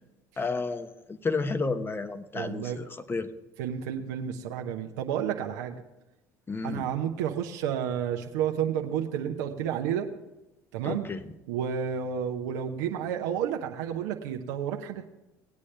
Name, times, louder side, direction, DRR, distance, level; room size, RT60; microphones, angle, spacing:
voice 1, 0.4-3.3 6.5-6.9 10.8-11.2, left 4 dB, 25° left, 10 dB, 1.0 m, -31 dB
voice 2, 2.3-2.8 3.6-5.8 6.6-10.1 10.7-11.1 11.5-15.0, right 9 dB, 85° right, 3 dB, 0.9 m, -31 dB
18.5 x 8.5 x 3.3 m, 0.98 s
supercardioid pair, 75°, 9 cm